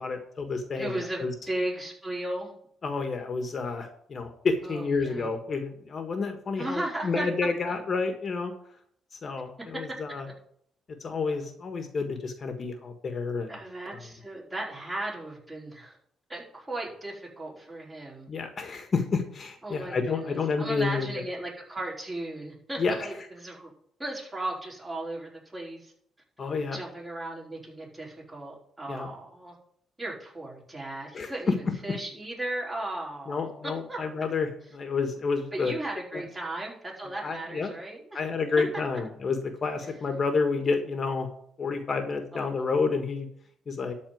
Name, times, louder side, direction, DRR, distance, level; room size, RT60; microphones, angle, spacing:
voice 1, 0.0-1.3 2.8-8.5 9.1-10.3 11.0-13.6 18.3-21.2 22.8-23.1 26.4-26.8 28.9-29.1 31.1-31.3 33.3-35.7 36.1-36.2 37.2-37.7 38.1-41.3 41.6-43.3 43.7-43.9, left 4 dB, 45° left, 6 dB, 1.5 m, -30 dB
voice 2, 0.8-2.5 4.6-5.3 6.6-7.3 13.5-16.0 16.3-18.3 19.6-23.7 24.0-25.9 26.7-29.5 30.0-31.5 31.8-33.5 33.9-34.0 35.5-38.2 42.3-42.7, right 1 dB, 20° right, -4 dB, 4.7 m, -36 dB
12.5 x 4.2 x 7.8 m, 0.66 s
cardioid pair, 90°, 0 cm